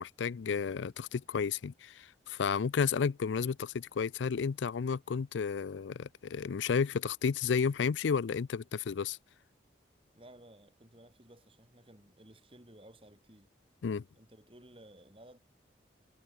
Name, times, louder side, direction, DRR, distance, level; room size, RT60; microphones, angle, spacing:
voice 1, 0.0-9.2 13.8-14.0, left 6 dB, 85° left, 0.4 m, -32 dB
voice 2, 10.1-13.5 14.2-15.4, right 1 dB, 30° right, 4.0 m, -56 dB
head